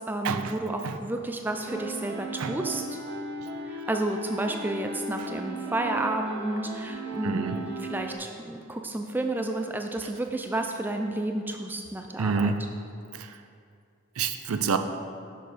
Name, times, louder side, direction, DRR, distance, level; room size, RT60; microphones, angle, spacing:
voice 1, 0.0-3.0 3.6-12.5, right 1 dB, 10° right, 4 dB, 0.3 m, -31 dB
sound 1, 1.5-8.1, right 2 dB, 30° right, 0.9 m, -36 dB
voice 2, 7.2-7.6 12.2-12.7 13.1-13.3 14.2-14.8, right 5 dB, 85° right, 8 dB, 0.5 m, -27 dB
6.7 x 6.5 x 4.9 m, 2.4 s
head